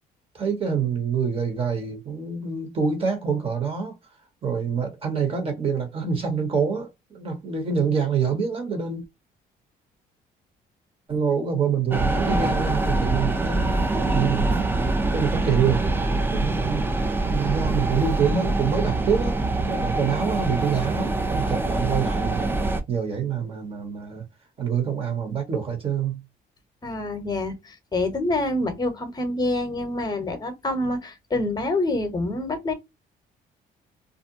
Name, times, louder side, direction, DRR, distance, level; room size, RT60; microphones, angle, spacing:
voice 1, 0.3-4.0 4.4-9.0 11.1-14.7 15.1-15.8 16.1-16.8 17.3-19.4 19.6-22.5 22.9-24.2 24.6-26.2, right 6 dB, 35° right, 1.2 m, -26 dB
sound 1, 11.9-22.8, right 2 dB, 10° right, 0.4 m, -24 dB
voice 2, 26.8-32.7, left 2 dB, 25° left, 0.9 m, -26 dB
2.5 x 2.1 x 2.6 m
cardioid pair, 120°, 17 cm